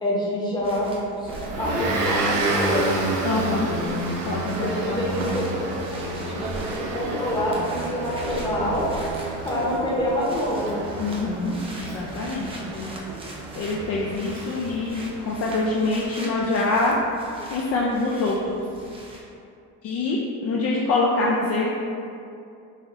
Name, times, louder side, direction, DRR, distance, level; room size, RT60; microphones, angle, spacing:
voice 1, 0.0-0.9 1.2-1.3 1.6-3.0 4.6-5.5 6.0-8.8 9.4-10.8, left 1 dB, 15° left, -6 dB, 0.9 m, -26 dB
sound 1, 0.5-16.4, left 1 dB, 85° right, 1.0 m, -45 dB
sound 2, 0.6-19.2, right 1 dB, 15° right, 0.4 m, -43 dB
Motor vehicle (road) / Engine, 1.3-15.5, right 2 dB, 65° right, 0.6 m, -30 dB
voice 2, 3.2-5.2 11.0-12.9 13.6-17.0 17.5-18.5 19.8-21.7, left 3 dB, 45° left, -4 dB, 0.4 m, -25 dB
3.8 x 2.6 x 3.1 m, 2.5 s
cardioid pair, 125°, 34 cm